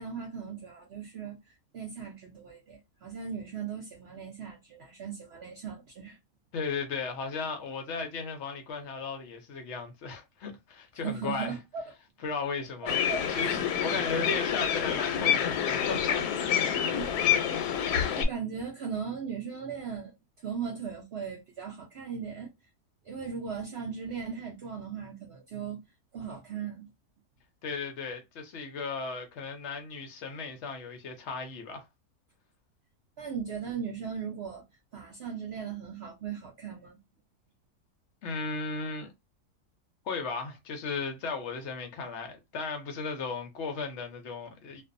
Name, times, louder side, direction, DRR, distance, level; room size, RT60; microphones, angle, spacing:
voice 1, 0.0-6.2 11.0-11.8 12.8-14.0 16.9-17.1 18.1-20.1 20.4-22.5 23.0-25.8 26.1-26.9 33.2-34.6 34.9-37.0, right 6 dB, 65° right, 0.6 m, -38 dB
voice 2, 6.5-11.6 12.2-13.0 13.3-16.5 27.6-31.9 38.2-39.1 40.0-44.8, left 4 dB, 65° left, 0.7 m, -36 dB
sound 1, 12.9-18.2, left 8 dB, 85° left, 1.1 m, -27 dB
2.5 x 2.2 x 2.5 m
omnidirectional pair, 1.7 m